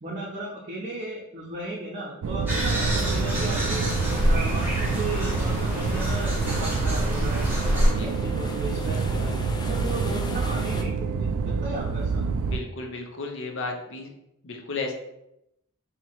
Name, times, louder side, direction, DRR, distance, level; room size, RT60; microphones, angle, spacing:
voice 1, 0.0-7.4 7.7-9.4 9.7-12.2, right 2 dB, 35° right, -6 dB, 0.6 m, -35 dB
sound 1, 2.2-12.6, right 4 dB, 75° right, 0.3 m, -27 dB
sound 2, 2.5-7.9, equal, 10° right, 1.1 m, -26 dB
sound 3, 3.5-10.8, left 2 dB, 20° left, 0.3 m, -39 dB
voice 2, 12.5-14.1 14.4-14.9, left 3 dB, 60° left, 3 dB, 0.7 m, -33 dB
2.9 x 2.8 x 4.3 m, 0.83 s
head